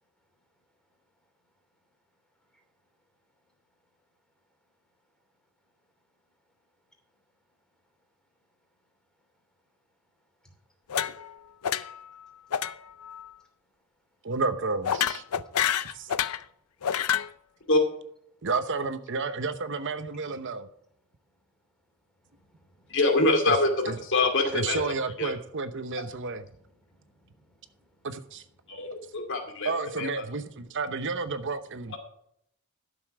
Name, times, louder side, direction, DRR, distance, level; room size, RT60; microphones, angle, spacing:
sound 1, 10.9-11.4 11.6-12.1 12.5-12.7 13.0-13.3 14.9-16.4 16.8-17.3, left 9 dB, 85° left, 0.5 m, -28 dB
voice 1, 14.2-15.2 15.9-16.1 18.4-20.6 23.5-23.6 23.8-24.0 24.5-26.4 28.0-28.4 29.6-32.0, right 4 dB, 55° right, 10 dB, 0.9 m, -31 dB
voice 2, 22.2-23.0 24.4-24.6 26.8-28.1 28.7-29.3, equal, 5° left, 1 dB, 2.9 m, -57 dB
voice 3, 22.9-23.7 24.0-24.8 25.2-25.3 28.7-29.7 30.0-30.1, left 2 dB, 60° left, 4 dB, 2.5 m, -24 dB
12.5 x 7.0 x 4.8 m, 0.71 s
head